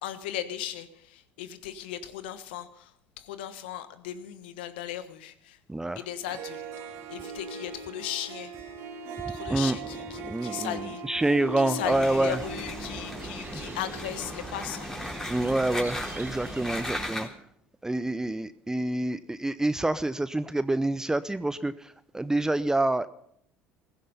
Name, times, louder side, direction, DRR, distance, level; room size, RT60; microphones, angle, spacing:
voice 1, 0.0-5.6 6.0-8.5 9.3-11.0 11.6-14.9, left 11 dB, 80° left, 12 dB, 1.3 m, -37 dB
Harp, 6.0-6.1 6.3-15.8, right 4 dB, 65° right, 2.5 m, -40 dB
voice 2, 10.2-12.4 13.5-13.6 15.3-17.3 17.8-23.1, right 2 dB, 10° right, 14 dB, 0.6 m, -27 dB
sound 1, 11.8-17.1, right 5 dB, 35° right, 1.9 m, -43 dB
sound 2, 11.9-17.3, left 1 dB, 10° left, 4.1 m, -37 dB
16.0 x 15.5 x 5.5 m, 0.71 s
hypercardioid pair, 70°, 5 cm